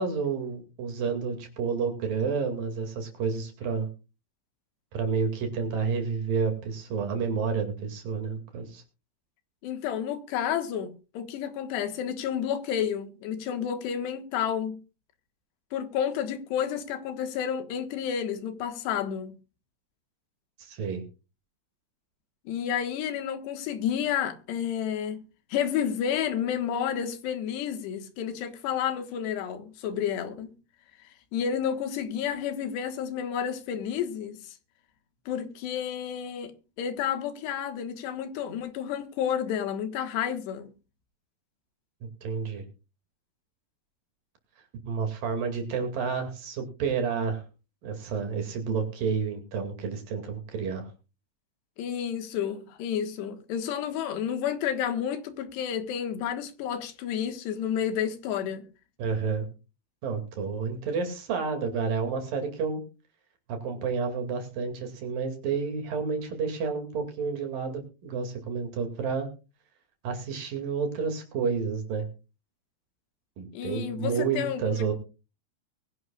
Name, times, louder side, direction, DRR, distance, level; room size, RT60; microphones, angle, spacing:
voice 1, 0.0-3.9 4.9-8.8 20.6-21.0 42.2-42.6 44.9-47.4 47.8-50.9 59.0-59.5 60.0-62.8 63.5-69.3 70.0-72.1 73.4-74.9, right 5 dB, 60° right, 3.9 m, -30 dB
voice 2, 9.6-14.8 15.7-19.3 22.5-25.2 25.5-30.5 31.3-34.6 35.3-36.5 36.8-40.7 51.8-58.6 73.5-74.9, left 8 dB, 90° left, 3.5 m, -30 dB
22.0 x 11.0 x 2.4 m
omnidirectional pair, 4.8 m